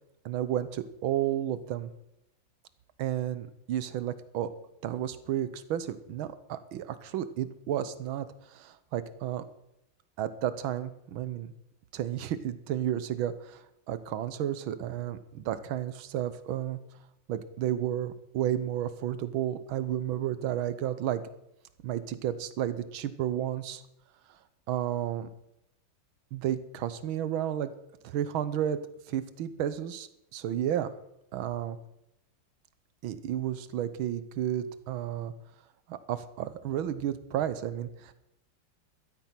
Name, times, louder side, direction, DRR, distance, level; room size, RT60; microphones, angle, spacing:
voice 1, 0.2-1.9 3.0-4.5 4.8-8.3 8.5-9.4 10.2-11.5 11.9-16.8 17.3-21.2 21.8-23.8 24.7-25.3 26.3-27.7 28.0-28.8 29.1-30.9 31.3-31.8 33.0-35.3 35.9-38.1, right 11 dB, 85° right, 13 dB, 1.7 m, -32 dB
13.5 x 11.5 x 5.8 m, 0.84 s
omnidirectional pair, 2.2 m